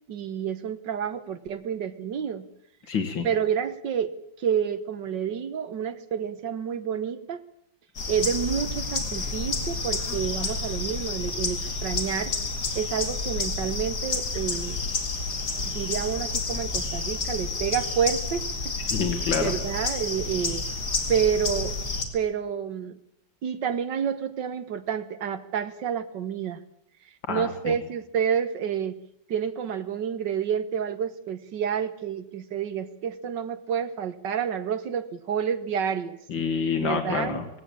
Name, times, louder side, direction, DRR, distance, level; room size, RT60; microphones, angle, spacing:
voice 1, 0.1-2.5 3.2-7.4 8.1-12.3 12.8-14.8 15.7-18.8 19.3-20.6 21.1-21.8 22.1-23.0 23.4-26.6 27.3-29.0 29.3-36.2 36.8-37.4, right 8 dB, 70° right, 12 dB, 1.8 m, -29 dB
voice 2, 2.9-3.3 18.9-19.4 27.3-27.7 36.3-37.6, left 6 dB, 80° left, 5 dB, 2.6 m, -27 dB
sound 1, 8.0-22.0, left 3 dB, 55° left, 2.7 m, -30 dB
18.5 x 17.0 x 8.8 m, 0.73 s
omnidirectional pair, 2.0 m